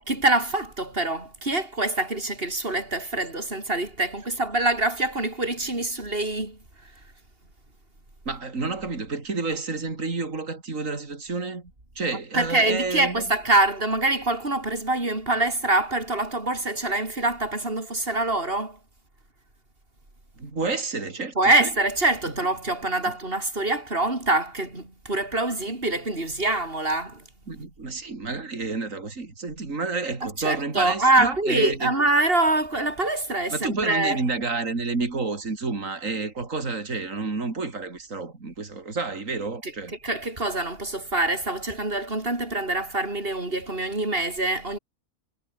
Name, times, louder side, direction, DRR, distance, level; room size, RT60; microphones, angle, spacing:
voice 1, 0.0-6.6 12.3-18.8 21.4-27.2 30.2-34.2 39.6-39.7 40.0-44.8, right 2 dB, 35° right, 6.0 m, -25 dB
voice 2, 8.3-11.6 12.0-13.2 20.4-21.7 27.5-31.9 33.5-39.9, right 3 dB, 55° right, 3.8 m, -29 dB
omnidirectional pair, 1.6 m